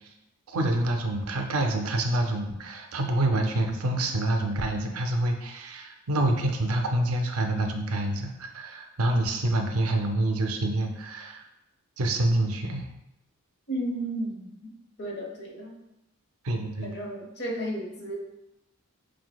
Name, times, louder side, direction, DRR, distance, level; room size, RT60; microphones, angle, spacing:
voice 1, 0.5-11.4 12.0-12.9 16.4-17.0, right 1 dB, 80° right, 4 dB, 0.5 m, -27 dB
voice 2, 13.7-14.7 15.0-15.8 16.8-18.2, right 1 dB, 50° left, 0 dB, 0.9 m, -33 dB
5.8 x 2.6 x 2.2 m, 0.90 s
head